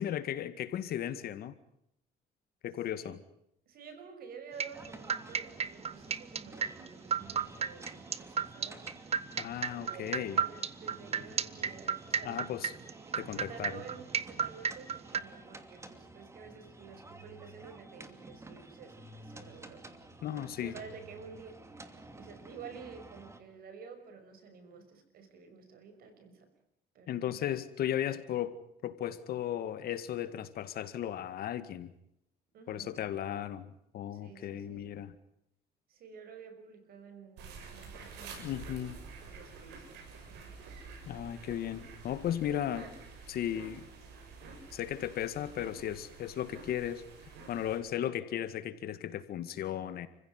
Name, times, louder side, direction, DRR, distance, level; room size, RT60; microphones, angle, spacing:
voice 1, 0.0-1.5 2.6-3.2 9.4-10.4 12.2-12.7 13.2-13.8 20.2-20.7 27.1-31.9 32.7-35.2 38.4-39.0 41.0-42.9 43.3-43.9 44.7-47.0 47.5-50.1, left 11 dB, 65° left, 12 dB, 2.0 m, -36 dB
voice 2, 2.9-3.2 3.7-8.9 9.6-12.5 13.3-19.9 20.6-21.6 22.1-26.5 26.9-27.4 32.5-33.0 34.1-34.9 35.9-38.7 39.2-40.6 42.5-42.9, right 6 dB, 60° right, 8 dB, 6.0 m, -51 dB
sound 1, 4.6-15.2, right 7 dB, 40° right, 1.1 m, -32 dB
sound 2, 4.7-23.4, right 2 dB, 15° right, 2.7 m, -51 dB
sound 3, 37.4-47.8, right 4 dB, 85° right, 7.3 m, -49 dB
29.5 x 16.0 x 9.7 m, 0.78 s
cardioid pair, 110°, 17 cm